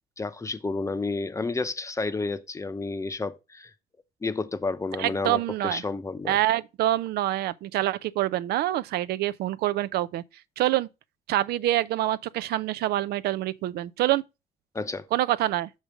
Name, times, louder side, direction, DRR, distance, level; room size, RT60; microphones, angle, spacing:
voice 1, 0.2-3.7 4.2-6.4 14.7-15.1, left 3 dB, 20° left, 0.7 m, -31 dB
voice 2, 5.0-5.8 6.3-10.2 10.6-10.9 11.3-14.2 15.1-15.7, right 14 dB, 70° right, 0.5 m, -26 dB
6.4 x 5.2 x 4.7 m
cardioid pair, 110°, 17 cm